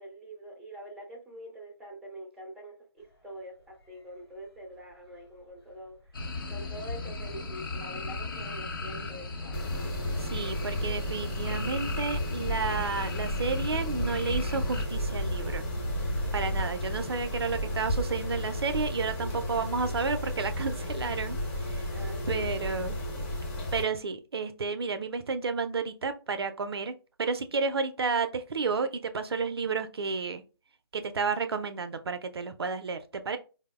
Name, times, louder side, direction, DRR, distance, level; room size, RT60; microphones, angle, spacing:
voice 1, 0.0-9.8 10.8-11.3 21.9-23.3, equal, ahead, 0.4 m, -45 dB
sound 1, 3.7-20.3, right 1 dB, 90° left, 1.2 m, -40 dB
sound 2, 6.1-14.8, left 3 dB, 55° left, 0.7 m, -37 dB
Mechanisms, 9.5-23.8, left 1 dB, 25° left, 0.9 m, -33 dB
voice 2, 10.2-15.6 16.3-21.4 21.7-21.8 22.3-23.0 23.7-26.9 27.2-30.4 30.9-33.4, right 4 dB, 75° right, 0.4 m, -31 dB
4.4 x 2.0 x 2.2 m
figure-of-eight pair, 145°, 13 cm